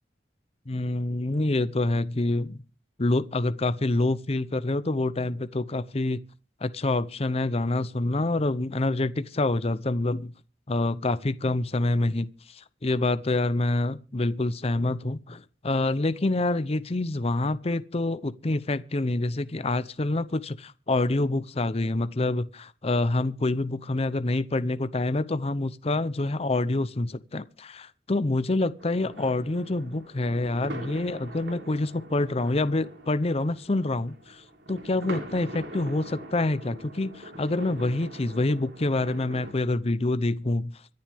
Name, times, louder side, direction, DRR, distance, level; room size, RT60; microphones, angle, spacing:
voice 1, 0.7-2.6 3.0-6.2 6.6-10.3 10.7-34.4 34.7-40.8, left 2 dB, 35° left, 0.7 m, -27 dB
sound 1, 28.8-39.5, right 1 dB, 80° right, 3.6 m, -43 dB
25.0 x 10.5 x 3.5 m
head